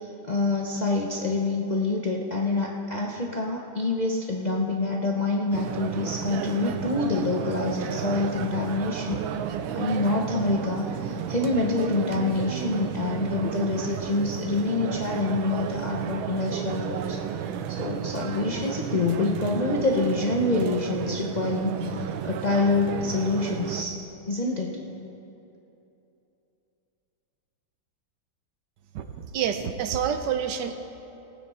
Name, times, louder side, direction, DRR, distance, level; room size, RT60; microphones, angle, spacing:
voice 1, 0.2-9.2 9.7-17.2 17.7-23.9 24.3-24.8, left 3 dB, 70° left, -1 dB, 0.4 m, -26 dB
sound 1, 5.5-23.8, right 9 dB, 85° right, 1.4 m, -33 dB
voice 2, 29.3-30.7, right 8 dB, 70° right, 8 dB, 1.2 m, -27 dB
18.5 x 9.4 x 4.2 m, 2.9 s
omnidirectional pair, 2.2 m